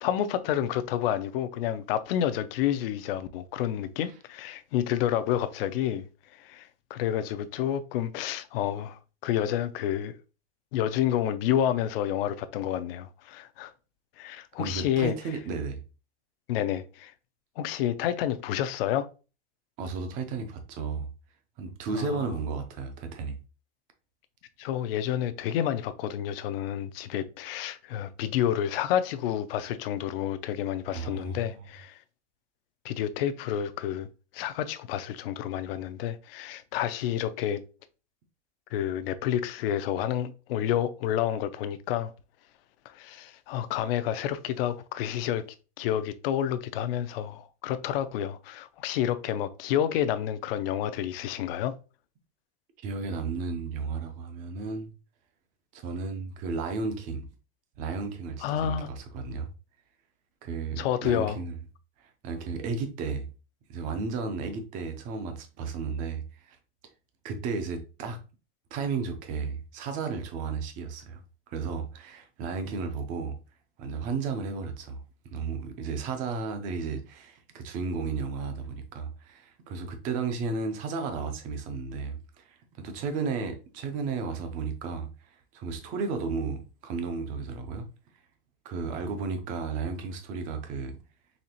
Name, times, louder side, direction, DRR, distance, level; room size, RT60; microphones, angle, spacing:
voice 1, 0.0-6.1 6.3-10.2 10.7-13.7 14.2-15.1 16.5-17.1 17.6-19.1 21.9-22.3 24.6-32.0 32.8-34.1 34.3-37.6 38.7-42.1 42.9-45.5 45.8-51.7 58.4-58.9 60.8-61.4, left 10 dB, 55° left, 0.4 m, -29 dB
voice 2, 14.6-15.8 19.8-21.1 21.6-23.4 30.9-31.6 52.8-54.9 55.7-57.3 57.8-59.5 60.4-61.6 62.0-63.2 63.7-66.6 67.2-68.2 68.7-71.2 71.5-73.4 73.8-75.0 75.3-87.9 88.6-91.0, right 4 dB, 25° right, 0.4 m, -33 dB
4.1 x 2.8 x 2.8 m
supercardioid pair, 160°, 34 cm